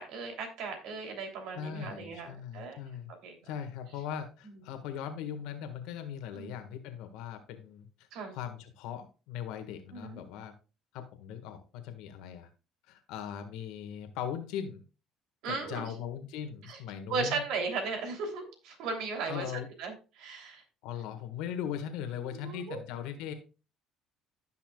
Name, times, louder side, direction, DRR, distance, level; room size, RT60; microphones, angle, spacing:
voice 1, 0.0-2.8 3.2-3.4 6.3-6.5 8.1-8.4 9.9-10.2 15.4-15.9 16.7-16.8 17.1-19.5 19.8-20.6 22.3-22.8, right 4 dB, 75° right, 4 dB, 3.1 m, -36 dB
voice 2, 1.5-3.1 3.4-10.5 10.9-12.5 12.9-14.8 15.5-17.4 19.3-19.7 20.8-23.3, left 9 dB, 80° left, 7 dB, 1.6 m, -39 dB
15.5 x 5.8 x 2.3 m, 0.32 s
supercardioid pair, 90°, 0 cm